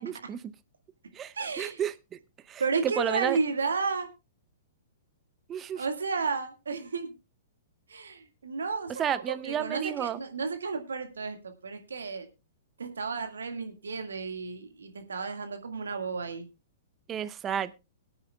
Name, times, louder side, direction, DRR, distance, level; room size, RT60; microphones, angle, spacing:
voice 1, 0.0-0.4 1.1-2.2 2.5-3.4 5.5-5.8 9.0-10.2 17.1-17.8, right 9 dB, 25° right, 15 dB, 0.7 m, -32 dB
voice 2, 1.3-1.8 2.6-4.1 5.7-7.1 7.9-12.3 12.8-16.5, right 4 dB, 80° right, 6 dB, 1.8 m, -32 dB
22.0 x 8.9 x 2.3 m, 0.26 s
hypercardioid pair, 120°, 0 cm